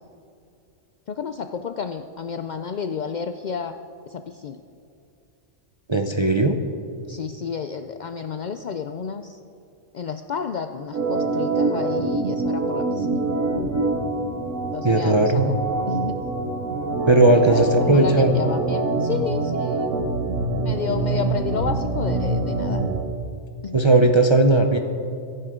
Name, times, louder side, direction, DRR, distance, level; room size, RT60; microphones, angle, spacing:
voice 1, 1.1-3.7 4.1-4.6 7.1-9.4 9.9-13.1 14.7-15.4 15.9-16.2 17.3-20.0 20.6-22.8 23.6-23.8, left 6 dB, 65° left, 8 dB, 0.4 m, -31 dB
voice 2, 5.9-6.6 14.8-15.5 17.1-18.3 23.7-24.8, right 2 dB, 30° right, 5 dB, 0.6 m, -17 dB
Organ, 10.9-23.1, right 3 dB, 75° right, 1.4 m, -25 dB
23.0 x 11.0 x 3.7 m, 2.6 s
omnidirectional pair, 1.4 m